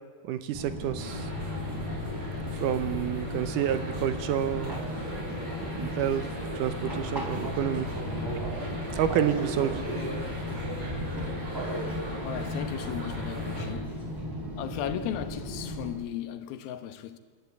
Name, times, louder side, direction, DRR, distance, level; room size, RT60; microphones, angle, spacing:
voice 1, 0.2-1.3 2.5-4.8 5.6-6.3 6.5-7.9 8.9-9.8, right 10 dB, 75° right, 2.1 m, -29 dB
Fixed-wing aircraft airplane, 0.5-15.9, equal, 5° right, 3.4 m, -35 dB
sound 1, 1.0-13.7, left 1 dB, 45° right, 7.0 m, -38 dB
voice 2, 12.2-13.9 14.6-17.2, left 10 dB, 90° left, 3.0 m, -36 dB
27.0 x 12.5 x 8.3 m
omnidirectional pair, 4.2 m